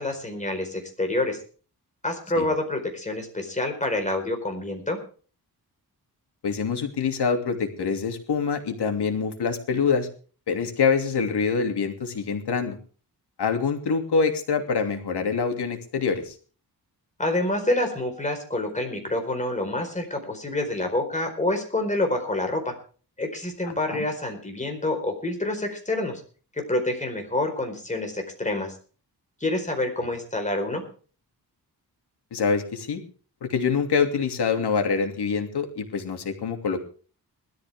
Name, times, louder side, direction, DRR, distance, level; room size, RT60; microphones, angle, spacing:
voice 1, 0.0-1.4 2.0-5.0 17.2-22.7 23.2-26.2 26.7-28.7 29.4-30.8, left 2 dB, 20° left, 4 dB, 4.5 m, -27 dB
voice 2, 6.4-10.1 10.5-12.8 13.4-16.3 23.9-24.0 32.3-33.0 33.4-36.8, left 5 dB, 90° left, 6 dB, 2.9 m, -25 dB
20.5 x 13.5 x 3.6 m, 0.40 s
wide cardioid pair, 150°, 39 cm